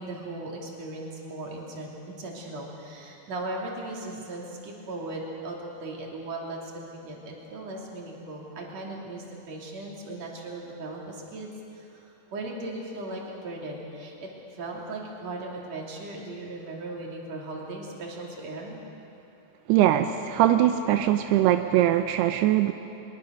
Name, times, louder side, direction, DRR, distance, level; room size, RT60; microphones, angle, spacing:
voice 1, 0.0-18.8, right 2 dB, 45° right, -2 dB, 3.8 m, -38 dB
voice 2, 19.7-22.7, right 12 dB, 85° right, 7 dB, 2.7 m, -21 dB
23.0 x 22.5 x 6.4 m, 2.9 s
omnidirectional pair, 4.7 m